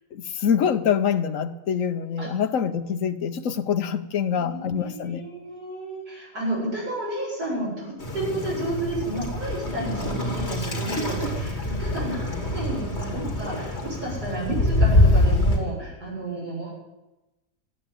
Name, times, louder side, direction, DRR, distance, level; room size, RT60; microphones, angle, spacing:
voice 1, 0.1-5.2, left 7 dB, 55° left, 1.1 m, -25 dB
voice 2, 4.3-16.7, right 1 dB, 60° right, 8.0 m, -31 dB
Waves surf, 8.0-15.6, left 1 dB, 35° left, 3.0 m, -24 dB
14.5 x 9.0 x 9.8 m
omnidirectional pair, 1.9 m